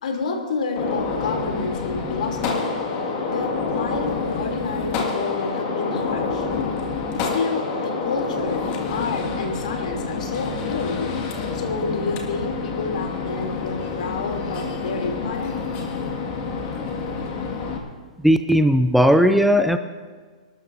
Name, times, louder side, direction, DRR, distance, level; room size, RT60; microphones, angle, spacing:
voice 1, 0.0-2.7 3.3-6.5 7.1-8.6 8.9-11.1 11.5-15.5, left 4 dB, 75° left, 1 dB, 3.1 m, -29 dB
Gunshot gunfire, 0.8-17.8, left 4 dB, 35° left, 2.0 m, -28 dB
voice 2, 18.2-19.8, equal, ahead, 9 dB, 0.4 m, -16 dB
28.0 x 12.5 x 2.7 m, 1.5 s
hypercardioid pair, 150°, 4 cm